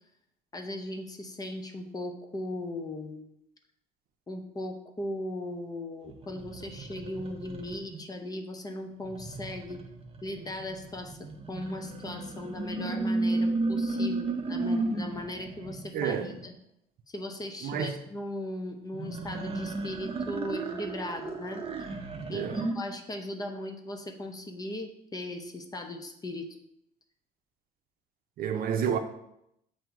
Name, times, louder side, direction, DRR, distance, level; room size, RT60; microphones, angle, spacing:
voice 1, 0.5-3.3 4.3-9.8 10.2-16.5 17.1-22.0 22.3-26.5, left 1 dB, 20° left, 0.7 m, -38 dB
sound 1, 6.1-8.0 9.0-15.9 18.9-22.7, right 2 dB, 35° right, 0.8 m, -33 dB
voice 2, 15.9-16.3 17.6-17.9 22.3-22.6 28.4-29.0, right 8 dB, 60° right, 0.7 m, -29 dB
7.6 x 2.7 x 4.5 m
cardioid pair, 110°, 17 cm